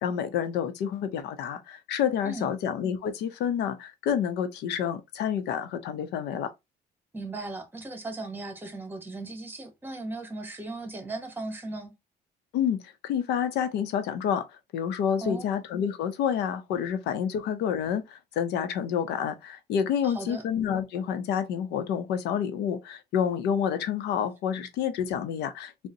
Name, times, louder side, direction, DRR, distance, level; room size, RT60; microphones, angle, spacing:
voice 1, 0.0-6.5 12.5-14.5 14.7-25.9, left 8 dB, 80° left, 0.6 m, -29 dB
voice 2, 2.2-2.5 7.1-11.9 15.2-15.5 20.0-20.4, right 2 dB, 10° right, 1.0 m, -37 dB
3.7 x 2.1 x 2.7 m
cardioid pair, 110°, 17 cm